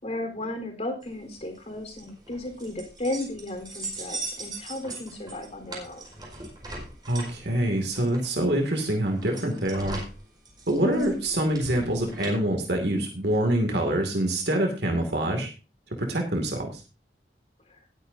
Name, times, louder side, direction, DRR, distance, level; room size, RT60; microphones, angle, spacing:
voice 1, 0.0-6.1 10.8-11.2 17.7-17.8, left 1 dB, 40° left, 3 dB, 4.0 m, -34 dB
sound 1, 1.0-12.3, right 2 dB, 25° right, 4.9 m, -40 dB
voice 2, 7.1-10.0 10.7-15.5 16.0-16.8, right 1 dB, 65° right, 2 dB, 2.5 m, -25 dB
19.5 x 9.1 x 2.8 m, 0.32 s
head